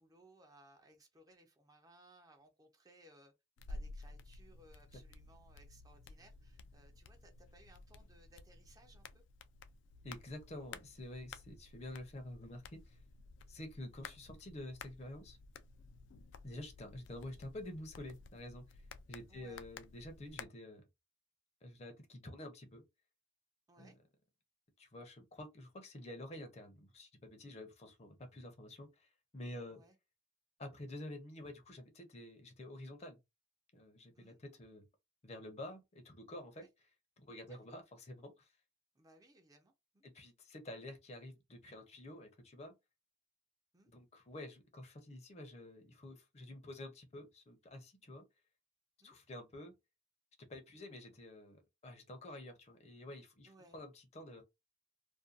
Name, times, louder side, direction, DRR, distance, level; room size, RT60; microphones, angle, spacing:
voice 1, 0.0-3.3 3.7-9.2 19.3-19.6 23.7-24.0 29.7-30.0 34.1-34.4 36.6-36.7 37.5-37.6 38.9-40.0 43.7-43.9 49.0-49.2 53.4-53.8, right 1 dB, 20° right, 0.4 m, -64 dB
sound 1, 3.6-20.5, left 3 dB, 85° left, 0.3 m, -54 dB
voice 2, 10.0-13.0 13.5-15.4 16.4-18.8 19.1-20.9 21.6-22.8 23.8-23.9 24.8-29.8 30.6-33.2 33.7-34.9 35.2-36.7 37.2-38.5 40.0-42.8 43.9-48.3 49.0-49.7 50.4-54.4, left 1 dB, 35° left, 0.6 m, -49 dB
2.5 x 2.2 x 2.4 m
head